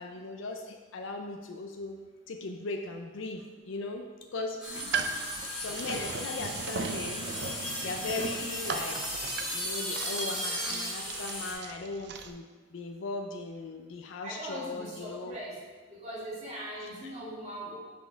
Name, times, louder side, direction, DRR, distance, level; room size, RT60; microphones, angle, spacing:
voice 1, 0.0-2.0 2.3-4.0 4.3-4.9 5.6-7.2 7.5-9.0 9.5-12.4 12.7-15.3, left 3 dB, 85° left, 3 dB, 0.5 m, -38 dB
sound 1, 4.6-11.5, equal, 5° right, 1.7 m, -36 dB
voice 2, 4.6-5.0 14.2-15.6 15.9-17.8, right 1 dB, 35° right, -7 dB, 1.8 m, -41 dB
sound 2, 4.7-12.3, right 5 dB, 60° right, 0.4 m, -38 dB
5.7 x 4.2 x 4.5 m, 1.3 s
head